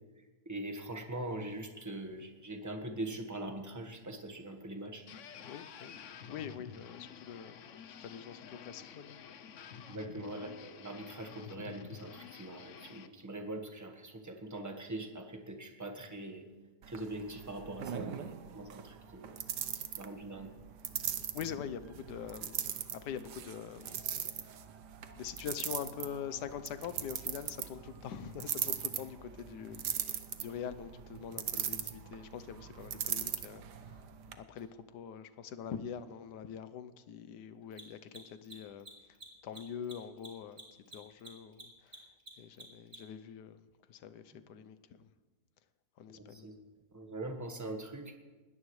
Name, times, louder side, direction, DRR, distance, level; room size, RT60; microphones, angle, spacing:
voice 1, 0.4-5.0 9.9-16.4 16.8-19.4 20.0-20.5 46.1-46.5 46.9-48.2, right 1 dB, 10° right, 1.2 m, -42 dB
sound 1, 5.1-13.1, left 8 dB, 60° left, 0.9 m, -50 dB
voice 2, 5.4-6.0 6.3-9.2 21.3-22.6 22.9-24.0 24.3-24.6 25.1-33.6 33.9-34.0 34.3-38.9 39.4-40.6 40.9-42.1 42.4-45.1 46.0-46.5, left 8 dB, 90° left, 1.4 m, -44 dB
sound 2, 16.8-34.3, right 9 dB, 85° right, 1.5 m, -40 dB
Mechanisms, 34.6-34.7 37.6-43.2, right 2 dB, 35° right, 3.3 m, -51 dB
20.5 x 17.0 x 3.2 m
omnidirectional pair, 1.7 m